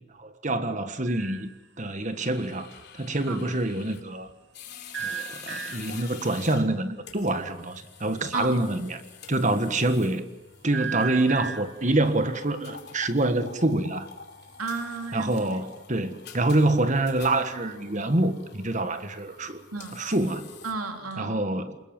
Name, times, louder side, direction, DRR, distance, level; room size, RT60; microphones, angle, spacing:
voice 1, 0.2-1.5 1.8-4.3 5.0-9.0 9.3-10.2 10.6-14.1 15.1-19.6 19.9-20.5 21.2-21.8, right 2 dB, 35° right, 1.5 m, -26 dB
sound 1, 1.1-1.6 4.9-6.1 10.7-11.9 14.6-15.5, right 7 dB, 55° right, 2.2 m, -36 dB
sound 2, 2.2-21.2, left 6 dB, 50° left, 3.1 m, -47 dB
voice 2, 14.6-15.6 19.7-20.0 20.6-21.4, right 3 dB, 85° right, 3.2 m, -33 dB
28.5 x 21.0 x 7.7 m
head